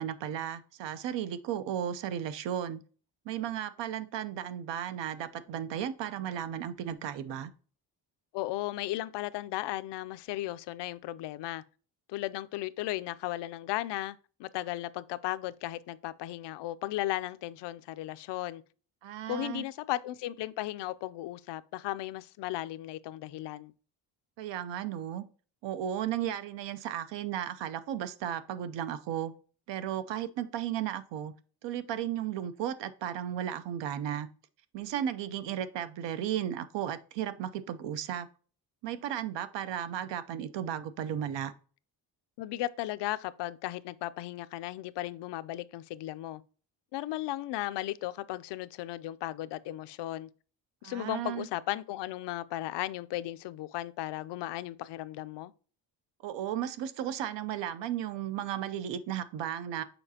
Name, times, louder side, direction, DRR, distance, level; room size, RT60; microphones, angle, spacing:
voice 1, 0.0-2.8 3.3-7.5 19.0-19.6 24.4-25.2 25.6-29.3 29.7-31.3 31.6-34.3 34.7-38.3 38.8-41.5 50.8-51.5 56.2-59.8, right 10 dB, 70° right, 0.6 m, -34 dB
voice 2, 8.3-11.6 12.1-18.6 19.3-23.7 42.4-46.4 46.9-50.3 50.8-55.5, left 15 dB, 65° left, 0.5 m, -36 dB
7.0 x 4.9 x 2.8 m
cardioid pair, 175°, 45 cm